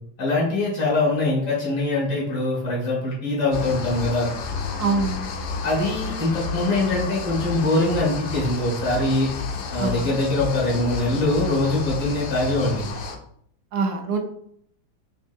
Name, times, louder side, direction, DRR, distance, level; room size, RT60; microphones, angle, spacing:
voice 1, 0.2-4.3 5.6-9.3 9.7-12.8, left 2 dB, 90° left, -6 dB, 2.5 m, -23 dB
sound 1, 3.5-13.2, left 4 dB, 70° left, 1.0 m, -31 dB
voice 2, 4.8-5.2 9.8-10.1 13.7-14.2, right 4 dB, 70° right, 5 dB, 1.0 m, -24 dB
5.3 x 2.6 x 2.6 m, 0.65 s
omnidirectional pair, 2.0 m